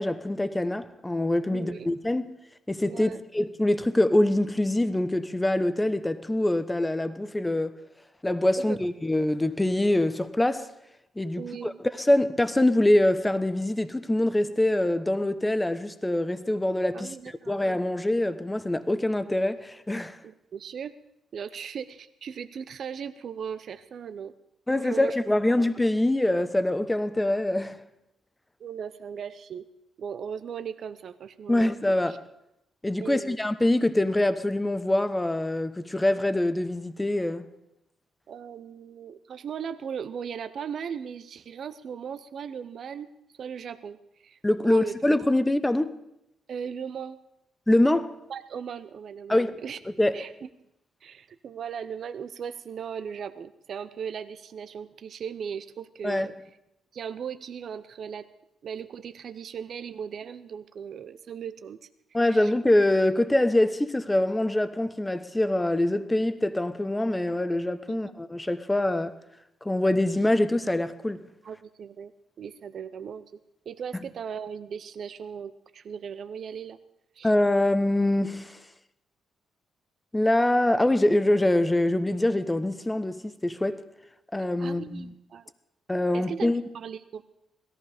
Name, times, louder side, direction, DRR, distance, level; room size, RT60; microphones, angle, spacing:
voice 1, 0.0-2.2 2.7-7.7 8.2-10.7 11.2-17.1 17.5-20.2 24.7-27.8 31.5-32.2 32.8-37.5 44.4-46.0 47.7-48.1 49.3-49.6 50.0-50.2 56.0-56.3 62.1-69.2 69.6-71.2 77.2-78.6 80.1-83.8 84.3-85.1 85.9-86.6, left 1 dB, 10° left, 0.9 m, -24 dB
voice 2, 1.5-1.9 2.9-3.2 8.6-8.8 11.4-11.8 16.9-17.6 20.2-20.9 21.3-24.3 24.8-25.2 28.6-29.6 30.0-31.7 32.1-32.2 33.0-33.4 38.3-43.1 43.4-45.0 46.5-47.2 48.3-49.8 50.1-50.3 51.0-56.3 56.9-58.3 58.6-61.8 62.1-62.5 67.9-68.2 71.4-72.1 72.4-73.2 73.7-76.8 77.1-77.3 84.6-85.5 86.1-87.2, right 7 dB, 55° right, 0.6 m, -38 dB
17.5 x 14.0 x 5.0 m
cardioid pair, 90°, 0 cm